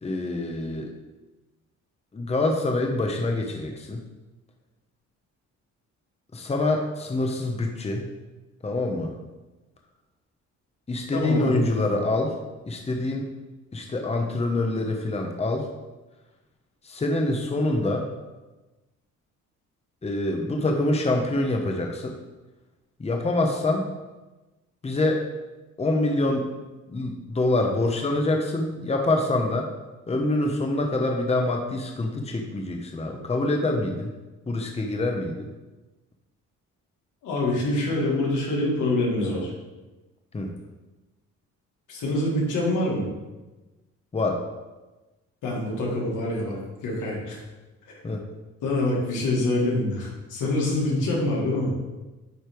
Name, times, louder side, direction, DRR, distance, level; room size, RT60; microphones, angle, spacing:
voice 1, 0.0-0.9 2.1-4.0 6.3-8.1 8.6-9.1 10.9-12.4 12.7-13.3 13.7-15.7 16.8-18.1 20.0-22.1 23.0-23.9 24.8-25.3 25.8-26.5 26.9-29.7 30.1-34.1 34.5-35.5 40.3-40.5 44.1-44.4 48.0-48.2 50.9-51.0, left 2 dB, 20° left, 2 dB, 0.9 m, -25 dB
voice 2, 11.1-11.6 37.2-39.5 41.9-43.1 45.4-47.4 47.9-48.0 48.6-51.7, left 1 dB, 85° left, -3 dB, 2.2 m, -25 dB
9.3 x 3.3 x 4.6 m, 1.1 s
cardioid pair, 90°, 30 cm